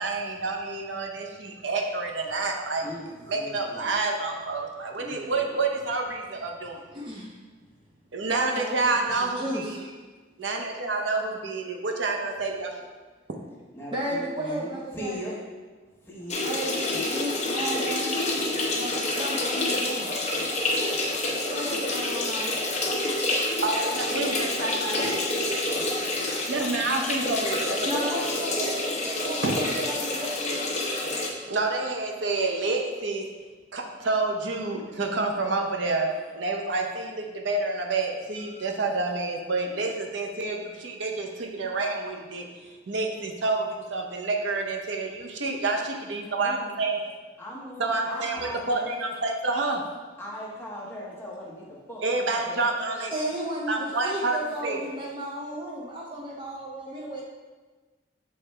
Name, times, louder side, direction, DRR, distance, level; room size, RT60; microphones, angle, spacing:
voice 1, 0.0-2.9 3.3-6.9 8.1-9.8 10.4-12.7 23.6-25.6 26.3-27.8 29.4-29.6 31.5-33.2 33.7-42.5 42.9-47.0 47.8-48.4 48.7-49.8 52.0-53.1 53.7-54.4 54.6-54.8, right 3 dB, 75° right, 2 dB, 0.7 m, -28 dB
voice 2, 1.2-1.6 2.8-4.0 5.0-5.8 13.7-15.3 16.0-16.4 16.9-17.3 18.2-18.5 45.3-45.4 46.4-46.7 47.4-49.0 50.2-52.7, equal, 15° left, -4 dB, 1.1 m, -40 dB
voice 3, 6.9-7.3 8.3-9.9 13.9-15.2 16.4-18.2 18.7-20.2 21.5-22.5 27.8-30.8 38.5-38.6 53.1-57.2, right 1 dB, 25° right, -3 dB, 0.6 m, -34 dB
sound 1, 16.3-31.3, left 2 dB, 35° left, 0.8 m, -28 dB
6.7 x 4.2 x 3.3 m, 1.3 s
head